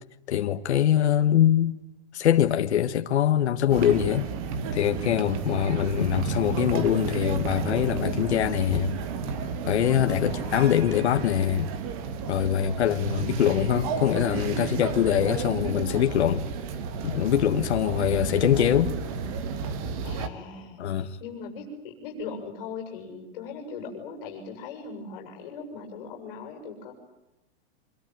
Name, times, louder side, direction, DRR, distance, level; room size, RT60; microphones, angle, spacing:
voice 1, 0.3-1.7 2.1-4.3 4.7-8.9 9.7-11.7 12.3-16.5 17.0-19.0 20.8-21.2, left 10 dB, 75° left, 1.7 m, -23 dB
sound 1, 3.7-20.3, right 5 dB, 30° right, 2.1 m, -32 dB
voice 2, 10.2-10.9 12.6-13.0 17.8-18.1 20.0-26.9, left 4 dB, 45° left, 7.0 m, -40 dB
26.0 x 23.5 x 9.2 m
supercardioid pair, 180°, 34 cm